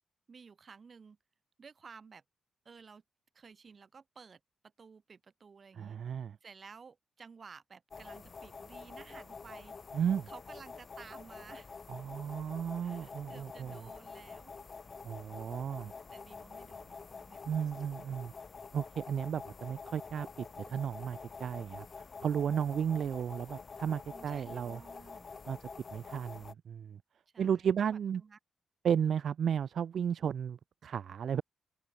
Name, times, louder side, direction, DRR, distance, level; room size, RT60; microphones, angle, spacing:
voice 1, 0.3-1.2 1.6-2.2 2.7-3.0 3.3-4.4 4.8-6.0 6.4-9.7 10.3-11.8 12.8-14.6 16.1-17.4 24.1-25.3 27.3-28.4, right 5 dB, 50° right, 5.6 m, -54 dB
voice 2, 5.7-6.4 9.9-10.3 11.9-13.8 15.0-15.9 17.4-18.3 18.7-24.8 25.5-27.0 27.4-28.2 28.8-31.4, right 8 dB, 70° right, 1.4 m, -34 dB
sound 1, 7.9-26.5, left 4 dB, 45° left, 2.9 m, -48 dB
open air
cardioid pair, 70°, 0 cm